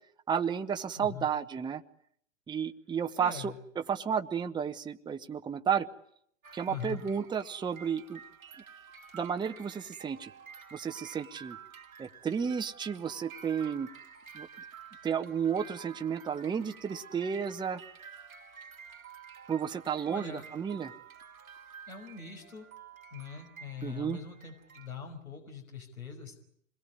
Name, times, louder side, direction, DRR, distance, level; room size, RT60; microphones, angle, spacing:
voice 1, 0.3-1.8 2.5-3.5 3.9-5.9 6.5-8.2 9.1-10.3 10.7-11.6 12.0-13.9 14.3-14.5 15.0-17.8 19.5-20.9 23.8-24.2, right 7 dB, 10° right, 7 dB, 1.0 m, -32 dB
voice 2, 1.0-1.3 3.2-3.5 6.7-7.0 20.1-20.5 21.9-22.7 23.1-26.3, left 6 dB, 85° left, 3 dB, 5.6 m, -42 dB
sound 1, 6.4-24.9, right 7 dB, 85° right, 2.2 m, -51 dB
27.0 x 21.5 x 9.8 m, 0.69 s
figure-of-eight pair, 110°, 41 cm